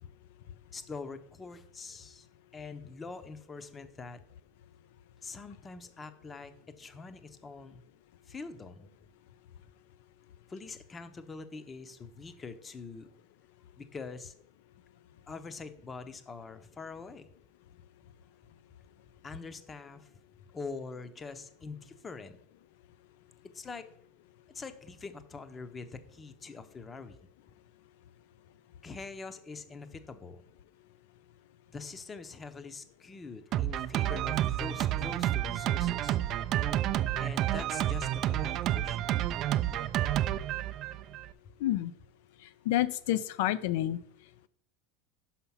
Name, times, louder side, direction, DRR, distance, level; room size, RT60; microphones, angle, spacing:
voice 1, 0.7-2.3 2.5-4.2 5.2-7.8 8.2-8.9 10.5-13.1 13.8-14.3 15.3-17.3 19.2-20.1 20.4-22.4 23.5-23.8 24.5-27.2 28.8-30.4 31.7-36.2 37.2-39.2 41.4-41.5, left 4 dB, 20° left, 10 dB, 0.7 m, -44 dB
Drum kit, 33.5-41.3, right 12 dB, 45° right, 0.3 m, -30 dB
voice 2, 41.6-41.9 42.7-44.0, left 14 dB, 75° left, 14 dB, 0.3 m, -28 dB
5.8 x 5.5 x 5.5 m, 0.65 s
supercardioid pair, 135°, 0 cm